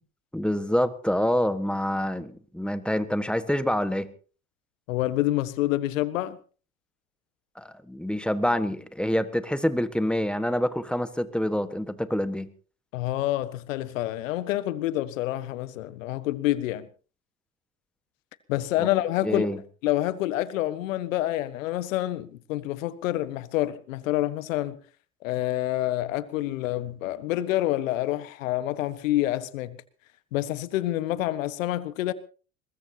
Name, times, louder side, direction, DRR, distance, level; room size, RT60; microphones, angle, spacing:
voice 1, 0.3-4.1 7.6-12.5 19.2-19.6, equal, ahead, 1.5 m, -26 dB
voice 2, 4.9-6.4 12.9-16.9 18.5-19.5 19.8-24.8 25.2-29.8 30.3-32.1, left 15 dB, 65° left, 1.5 m, -27 dB
22.0 x 20.5 x 2.9 m
hypercardioid pair, 85°, 41 cm